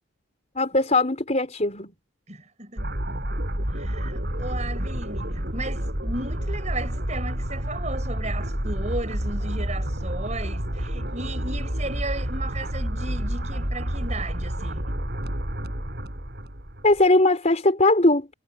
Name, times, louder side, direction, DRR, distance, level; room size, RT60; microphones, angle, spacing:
voice 1, 0.5-1.9 16.8-18.3, left 2 dB, 35° left, 4.5 m, -20 dB
voice 2, 2.3-2.8 3.7-15.0, right 2 dB, 35° right, 5.9 m, -35 dB
sound 1, 2.8-17.0, equal, 50° right, 5.4 m, -29 dB
head